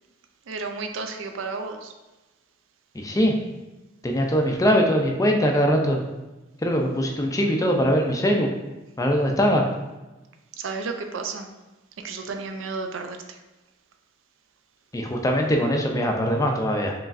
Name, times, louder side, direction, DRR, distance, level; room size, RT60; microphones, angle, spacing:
voice 1, 0.5-1.9 10.6-11.5 12.0-13.4, right 4 dB, 80° right, 5 dB, 0.4 m, -32 dB
voice 2, 2.9-3.3 4.0-6.0 6.6-8.5 9.0-9.6 14.9-16.9, equal, 15° left, 2 dB, 0.4 m, -21 dB
4.8 x 3.1 x 2.5 m, 1.1 s
head